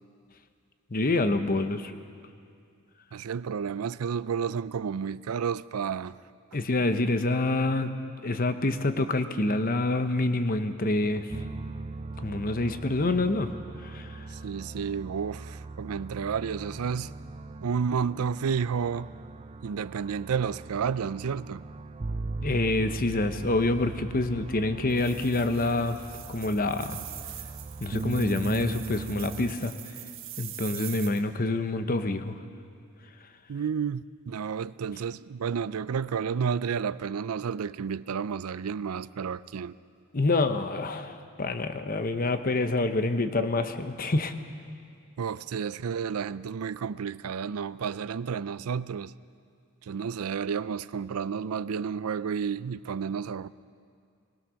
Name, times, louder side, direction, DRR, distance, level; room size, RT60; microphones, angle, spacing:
voice 1, 0.9-1.9 6.5-7.9 8.2-11.3 12.2-13.5 13.9-14.2 22.4-26.0 26.3-27.0 27.8-29.7 30.4-32.4 40.1-44.3, left 2 dB, 40° left, 0.9 m, -27 dB
voice 2, 3.1-6.2 14.3-17.1 17.6-19.1 19.6-21.7 33.5-39.7 45.2-49.1 49.8-53.5, right 6 dB, 90° right, 0.4 m, -31 dB
sound 1, 11.3-29.6, right 2 dB, 30° right, 0.4 m, -39 dB
sound 2, 24.9-31.2, right 12 dB, 65° right, 1.6 m, -43 dB
21.5 x 20.0 x 6.3 m
head